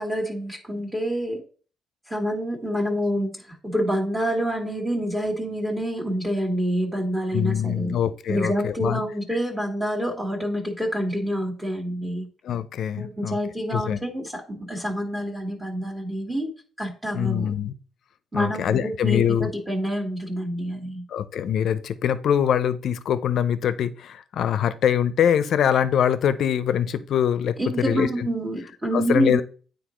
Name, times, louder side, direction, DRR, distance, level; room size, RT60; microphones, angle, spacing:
voice 1, 0.0-1.4 2.1-7.9 8.3-12.3 13.0-16.5 16.8-17.5 18.3-21.0 27.6-29.4, equal, 15° right, 1.7 m, -27 dB
voice 2, 7.3-9.0 12.4-13.4 13.7-14.0 17.1-17.7 18.3-19.5 21.1-27.6 27.8-28.3 28.9-29.4, left 9 dB, 70° left, 0.6 m, -23 dB
9.2 x 3.9 x 3.1 m
cardioid pair, 90°, 0 cm